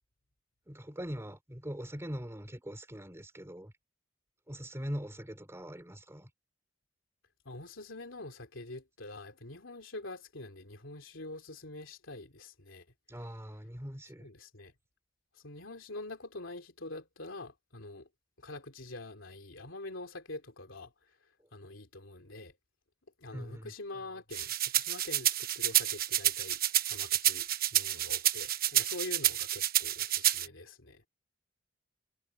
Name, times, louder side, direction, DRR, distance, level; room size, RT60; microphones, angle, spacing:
voice 1, 0.7-3.7 4.5-6.3 13.1-14.3 23.3-23.7, equal, 15° right, 3.4 m, -42 dB
voice 2, 7.4-12.8 14.2-14.7 15.3-18.1 18.4-22.6 23.2-26.6 26.9-31.0, left 2 dB, 75° left, 3.2 m, -45 dB
sound 1, 24.3-30.5, right 12 dB, 50° right, 0.9 m, -29 dB
head